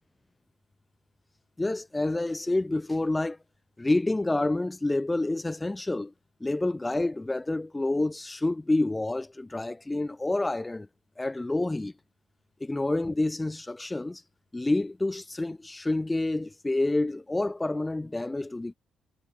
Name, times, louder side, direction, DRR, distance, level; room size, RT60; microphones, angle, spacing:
voice 1, 1.6-3.4 3.8-6.1 6.4-10.9 11.2-11.9 12.6-14.2 14.5-18.7, left 2 dB, 15° left, 1.1 m, -28 dB
cardioid pair, 90°, 0 cm